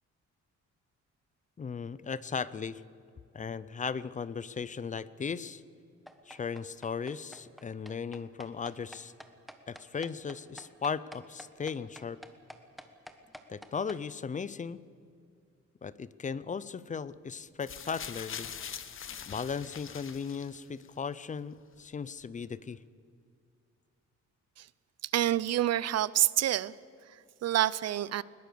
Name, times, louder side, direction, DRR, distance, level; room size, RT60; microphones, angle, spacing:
voice 1, 1.6-2.8 3.3-5.6 6.3-9.1 9.7-12.2 13.5-14.8 15.8-18.5 19.3-22.8, left 6 dB, 25° left, 17 dB, 0.5 m, -37 dB
sound 1, 6.1-14.0, equal, ahead, 1.2 m, -49 dB
sound 2, 17.6-20.9 21.7-21.8, left 8 dB, 45° left, 1.0 m, -43 dB
voice 2, 25.0-26.7 27.4-28.2, right 12 dB, 60° right, 20 dB, 0.6 m, -27 dB
21.0 x 20.5 x 6.8 m, 2.4 s
wide cardioid pair, 165°, 30 cm